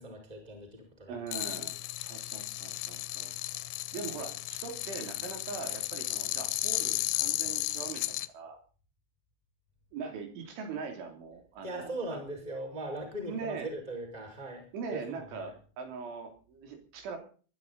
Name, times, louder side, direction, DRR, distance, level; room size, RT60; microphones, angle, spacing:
voice 1, 0.0-1.1 11.6-15.5, right 1 dB, 10° right, 2 dB, 5.2 m, -40 dB
voice 2, 1.1-3.3 3.9-8.6 9.9-12.2 13.2-13.7 14.7-17.2, right 5 dB, 70° right, 5 dB, 5.6 m, -41 dB
sound 1, 1.3-8.3, left 16 dB, 75° left, 2.9 m, -34 dB
22.5 x 12.0 x 4.1 m, 0.40 s
omnidirectional pair, 5.6 m